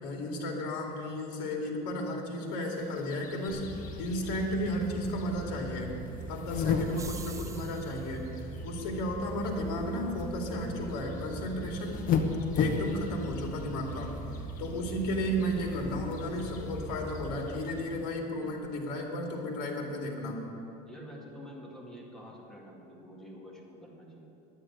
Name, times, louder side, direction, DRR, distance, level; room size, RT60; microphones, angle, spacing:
voice 1, 0.0-5.9 6.3-8.3 8.6-12.0 12.5-14.1 14.6-20.4, left 1 dB, 75° left, 1 dB, 2.6 m, -34 dB
sound 1, 2.8-18.1, left 5 dB, 40° left, 1.1 m, -37 dB
sound 2, 3.5-17.4, right 2 dB, 25° left, 2.9 m, -41 dB
sound 3, 6.8-8.2, right 6 dB, 15° right, 0.4 m, -46 dB
voice 2, 20.8-24.3, equal, ahead, -3 dB, 2.1 m, -48 dB
10.0 x 9.8 x 7.7 m, 2.9 s
supercardioid pair, 130°, 20 cm